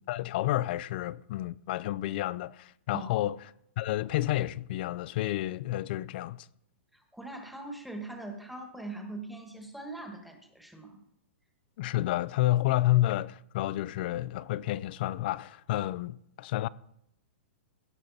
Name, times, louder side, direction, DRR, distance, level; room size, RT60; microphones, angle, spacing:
voice 1, 0.1-3.4 3.8-6.5 11.8-16.7, left 15 dB, 50° left, 0.4 m, -30 dB
voice 2, 2.9-3.3 6.9-11.0, right 2 dB, ahead, 1.4 m, -42 dB
17.0 x 6.0 x 4.1 m
hypercardioid pair, 150°, 7 cm